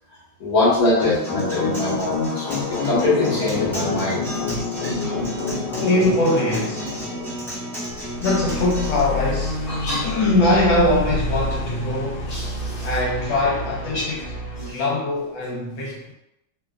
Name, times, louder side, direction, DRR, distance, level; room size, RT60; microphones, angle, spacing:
voice 1, 0.4-4.2 9.7-10.1 12.3-12.9 13.3-13.4 13.9-14.0 14.6-14.8, left 2 dB, 50° left, -9 dB, 1.6 m, -23 dB
sound 1, 1.0-14.7, left 2 dB, 85° left, 1.5 m, -28 dB
Acoustic guitar, 1.0-9.0, equal, 5° left, 0.3 m, -33 dB
voice 2, 1.2-1.5 1.8-1.9 2.3-2.5 4.8-6.9 8.2-9.6 10.0-12.3 12.8-16.1, left 2 dB, 70° left, -4 dB, 1.6 m, -23 dB
3.8 x 2.3 x 2.3 m, 0.84 s
omnidirectional pair, 2.3 m